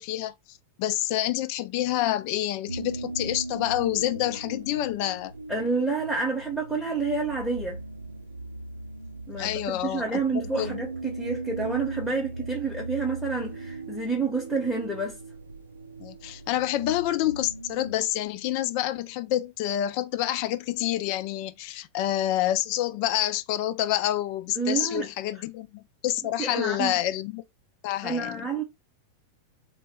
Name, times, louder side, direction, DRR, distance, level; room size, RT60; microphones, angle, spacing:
voice 1, 0.0-5.3 9.4-10.8 16.0-27.4 27.8-28.5, left 13 dB, 45° left, 0.3 m, -28 dB
sound 1, 2.7-17.9, right 2 dB, 80° right, 0.4 m, -38 dB
voice 2, 5.5-7.8 9.3-15.2 24.6-25.0 26.4-26.9 28.0-28.6, right 4 dB, ahead, 0.7 m, -29 dB
2.1 x 2.0 x 3.4 m
figure-of-eight pair, 90°, 0 cm